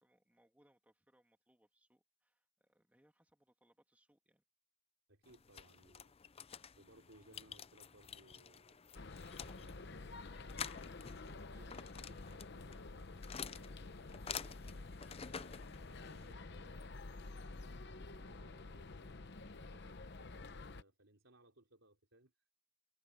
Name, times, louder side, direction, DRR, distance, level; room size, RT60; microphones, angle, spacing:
voice 1, 0.0-4.4 11.5-11.7, right 1 dB, 5° right, 2.5 m, -74 dB
voice 2, 5.1-6.2 6.5-10.3 11.2-22.3, right 1 dB, 70° right, 4.2 m, -66 dB
sound 1, 5.2-16.3, left 7 dB, 30° left, 0.5 m, -50 dB
sound 2, 8.9-20.8, left 3 dB, 55° left, 0.9 m, -50 dB
head